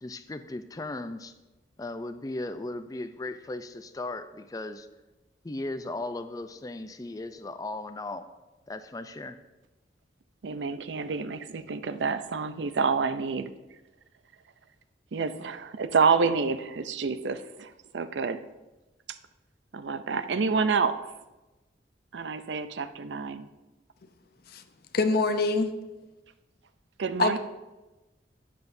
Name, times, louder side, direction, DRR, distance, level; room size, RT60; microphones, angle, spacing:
voice 1, 0.0-1.3 1.8-4.9 5.4-8.3 8.7-9.4, left 2 dB, 20° left, 10 dB, 0.4 m, -37 dB
voice 2, 10.4-13.5 15.1-18.4 19.7-21.0 22.1-23.5 27.0-27.4, right 5 dB, 85° right, 12 dB, 0.5 m, -28 dB
voice 3, 24.9-25.7 27.2-27.4, left 3 dB, 60° left, 8 dB, 0.7 m, -25 dB
12.5 x 7.8 x 2.7 m, 1.1 s
head